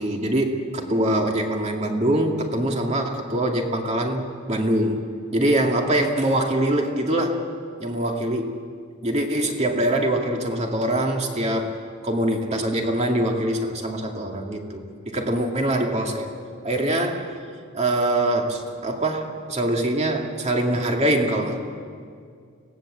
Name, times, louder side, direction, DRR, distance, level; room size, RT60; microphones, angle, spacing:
voice 1, 0.0-4.2 4.5-7.5 7.8-8.6 9.0-11.8 12.0-16.3 16.6-17.3 17.7-21.6, right 1 dB, 30° right, 2 dB, 2.4 m, -23 dB
25.5 x 18.5 x 7.7 m, 2.2 s
head